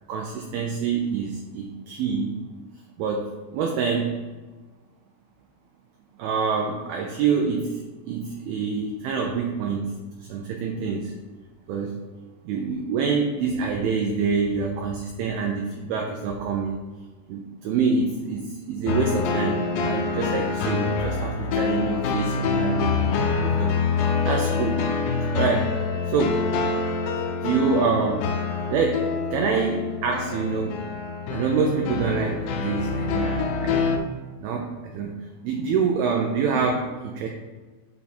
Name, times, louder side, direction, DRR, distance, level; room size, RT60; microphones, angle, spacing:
voice 1, 0.1-2.4 3.0-4.2 6.2-9.9 10.2-11.1 11.7-12.0 12.5-16.8 17.3-23.0 23.4-24.9 25.3-25.8 26.1-26.5 27.4-28.4 28.7-30.8 31.3-33.8 34.4-35.1 35.4-37.3, right 5 dB, 80° right, 1 dB, 2.3 m, -26 dB
sound 1, 18.9-34.0, left 5 dB, 90° left, 2.9 m, -26 dB
7.9 x 4.3 x 4.2 m, 1.3 s
omnidirectional pair, 5.1 m